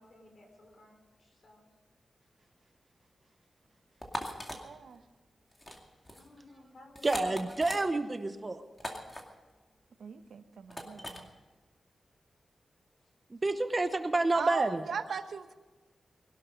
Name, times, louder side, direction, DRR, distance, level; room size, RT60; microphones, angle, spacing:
voice 1, 0.0-1.7 6.1-7.4 7.7-7.9 13.0-13.1, left 2 dB, 50° left, 2 dB, 5.1 m, -55 dB
sound 1, 4.0-4.6 5.5-5.8 6.0-6.3 7.0-7.8 8.8-9.2 10.7-11.2, left 1 dB, 15° left, 2.3 m, -39 dB
voice 2, 4.5-5.0 10.0-11.3 14.3-15.5, right 6 dB, 90° right, 9 dB, 1.1 m, -38 dB
voice 3, 7.0-8.6 13.3-14.8, right 2 dB, 25° right, 8 dB, 0.9 m, -29 dB
21.0 x 12.0 x 5.3 m, 1.3 s
wide cardioid pair, 145°, 0 cm